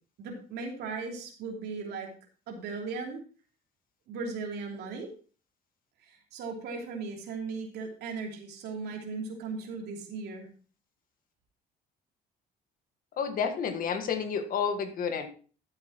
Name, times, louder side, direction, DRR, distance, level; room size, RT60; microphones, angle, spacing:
voice 1, 0.2-2.1 2.5-3.2 4.1-5.1 6.0-10.5, right 4 dB, 80° right, 1 dB, 2.9 m, -37 dB
voice 2, 13.2-15.3, left 6 dB, 55° left, 8 dB, 1.6 m, -30 dB
13.0 x 7.7 x 3.0 m, 0.39 s
cardioid pair, 110°, 17 cm